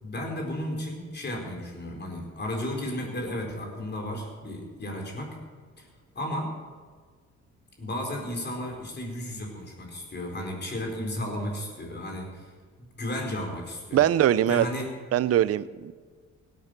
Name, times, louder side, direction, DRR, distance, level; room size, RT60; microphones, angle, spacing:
voice 1, 0.0-5.4 5.8-5.9 6.1-6.5 7.8-12.5 12.8-14.1 14.5-14.9, left 1 dB, 35° left, 1 dB, 4.5 m, -33 dB
voice 2, 13.9-14.7 15.1-15.9, right 11 dB, 50° right, 17 dB, 0.6 m, -22 dB
17.0 x 9.0 x 6.7 m, 1.5 s
cardioid pair, 90°, 30 cm